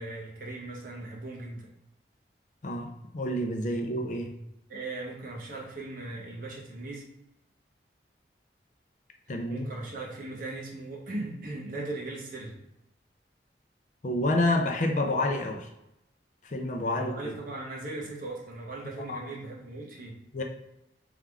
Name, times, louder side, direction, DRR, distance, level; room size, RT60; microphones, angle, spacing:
voice 1, 0.0-1.7 4.7-7.1 9.3-12.6 16.9-20.4, right 2 dB, 50° right, -2 dB, 1.0 m, -38 dB
voice 2, 2.6-4.3 9.3-9.7 14.0-15.7 16.4-17.1 19.1-19.2 20.3-20.4, left 1 dB, 45° left, 3 dB, 0.5 m, -28 dB
3.5 x 3.5 x 3.4 m, 0.88 s
head